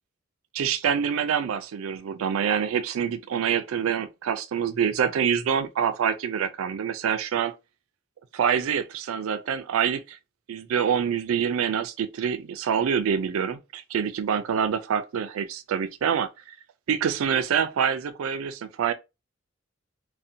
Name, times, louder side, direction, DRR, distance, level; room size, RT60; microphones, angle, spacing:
voice 1, 0.5-7.5 8.3-10.2 10.5-16.6 16.9-18.9, right 7 dB, 85° right, 0.4 m, -26 dB
2.6 x 2.1 x 2.6 m
head